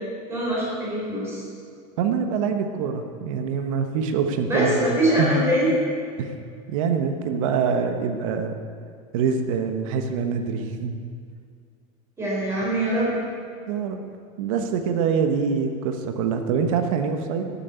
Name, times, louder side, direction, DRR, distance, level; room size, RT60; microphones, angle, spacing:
voice 1, 0.3-1.4 4.5-5.7 12.2-13.1, right 1 dB, 15° right, -6 dB, 4.4 m, -23 dB
voice 2, 2.0-5.4 6.2-6.3 6.7-8.5 9.1-10.9 13.7-14.0 14.4-17.5, right 6 dB, 65° right, 6 dB, 1.3 m, -25 dB
12.5 x 8.5 x 8.3 m, 2.2 s
supercardioid pair, 175°, 19 cm